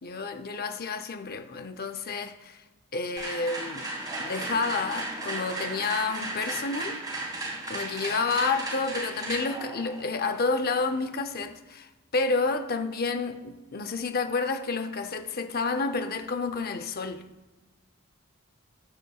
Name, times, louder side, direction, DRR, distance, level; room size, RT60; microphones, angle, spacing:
voice 1, 0.0-2.6 2.9-3.9 4.2-7.0 7.7-17.2, left 4 dB, 45° left, 0.7 m, -30 dB
sound 1, 3.2-11.1, right 2 dB, 20° right, 1.8 m, -35 dB
14.0 x 9.6 x 2.4 m
head